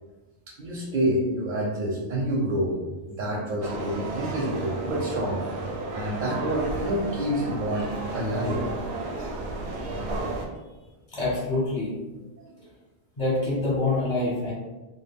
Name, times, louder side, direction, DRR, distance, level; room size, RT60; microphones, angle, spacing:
voice 1, 0.6-2.7 3.1-5.4 5.9-8.6, right 1 dB, 60° right, -3 dB, 0.6 m, -27 dB
sound 1, 3.6-10.5, right 2 dB, 90° right, 0.9 m, -33 dB
voice 2, 11.1-11.9 13.2-14.5, left 2 dB, 30° left, -7 dB, 0.8 m, -25 dB
2.2 x 2.0 x 3.4 m, 1.1 s
omnidirectional pair, 1.1 m